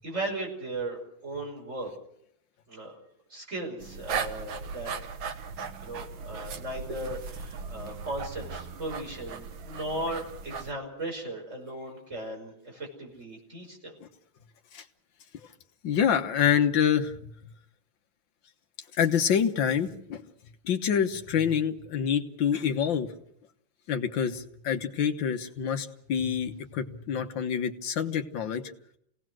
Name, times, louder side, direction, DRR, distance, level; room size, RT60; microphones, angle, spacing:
voice 1, 0.0-1.9 2.7-2.9 3.3-4.9 5.8-13.9, right 1 dB, 35° right, 0 dB, 5.9 m, -37 dB
sound 1, 3.8-10.7, right 5 dB, 75° right, 1.9 m, -37 dB
voice 2, 15.8-17.3 19.0-20.2 20.6-23.1 23.9-28.6, left 8 dB, 70° left, 6 dB, 1.9 m, -26 dB
27.0 x 18.0 x 6.2 m, 0.72 s
omnidirectional pair, 2.2 m